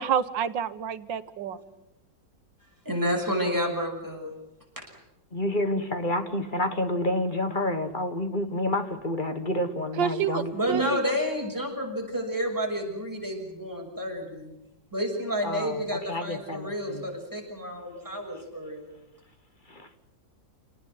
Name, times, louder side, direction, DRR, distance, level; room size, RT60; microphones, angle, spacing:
voice 1, 0.0-1.6 10.0-11.0, right 8 dB, 80° right, 12 dB, 1.8 m, -29 dB
voice 2, 2.8-4.3 10.0-14.5 14.9-19.0, equal, 10° right, 0 dB, 6.4 m, -30 dB
voice 3, 5.3-10.8 15.4-17.0 18.3-18.5 19.7-19.8, left 1 dB, 25° left, 8 dB, 1.6 m, -29 dB
28.0 x 19.0 x 7.9 m, 0.88 s
omnidirectional pair, 2.0 m